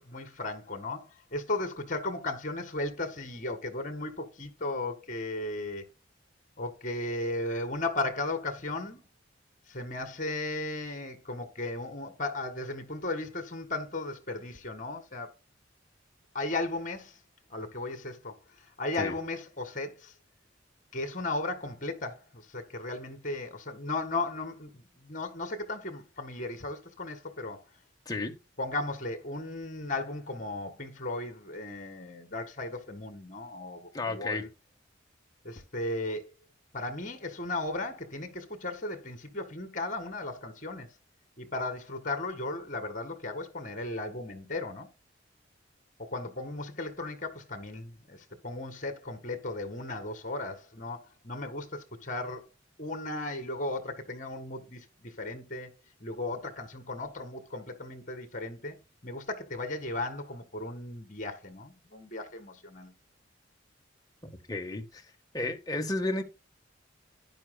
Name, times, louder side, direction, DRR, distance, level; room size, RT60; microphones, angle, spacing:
voice 1, 0.0-5.9 6.6-9.0 9.7-15.3 16.3-17.2 17.5-20.1 20.9-27.6 28.6-34.5 35.4-36.3 36.7-40.9 41.4-44.9 46.0-52.5 52.8-55.7 56.0-62.9, left 2 dB, 40° left, 1.8 m, -36 dB
voice 2, 33.9-34.4 64.5-65.0 65.3-66.2, left 2 dB, 20° left, 1.2 m, -32 dB
12.0 x 10.0 x 2.2 m
head